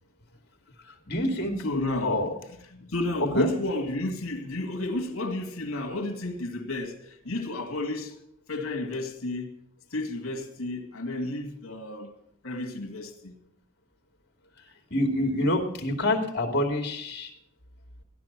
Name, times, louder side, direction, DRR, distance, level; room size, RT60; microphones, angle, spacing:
voice 1, 1.1-1.6 2.0-2.3 3.3-3.5 14.9-17.3, left 1 dB, 50° left, 2.6 m, -26 dB
voice 2, 1.6-2.2 2.7-8.2 8.5-9.5 9.9-12.1 12.4-13.3, left 2 dB, 65° left, 2.3 m, -32 dB
15.0 x 11.0 x 6.0 m
head